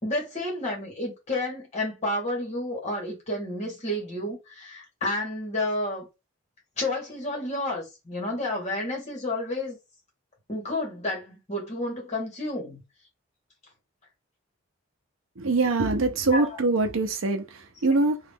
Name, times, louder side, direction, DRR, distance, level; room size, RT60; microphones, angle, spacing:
voice 1, 0.0-6.1 6.8-9.8 10.5-12.8 16.3-16.6, left 1 dB, 30° left, 1.5 m, -30 dB
voice 2, 15.4-18.2, right 3 dB, 75° right, 0.7 m, -24 dB
2.9 x 2.5 x 3.5 m
head